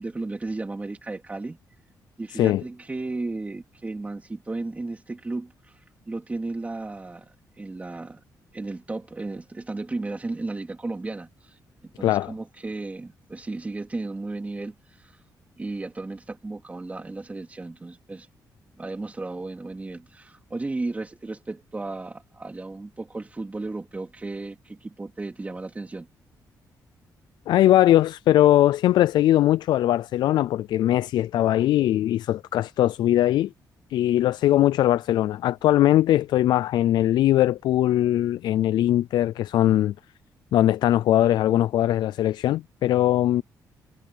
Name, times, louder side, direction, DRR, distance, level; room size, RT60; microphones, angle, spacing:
voice 1, 0.0-1.6 2.2-5.7 6.1-8.2 8.5-15.2 15.6-18.3 18.8-26.1, right 2 dB, 20° right, 2.7 m, -34 dB
voice 2, 12.0-12.3 27.5-33.5 33.9-39.9 40.5-43.4, left 13 dB, 90° left, 0.4 m, -20 dB
cardioid pair, 110°, 7 cm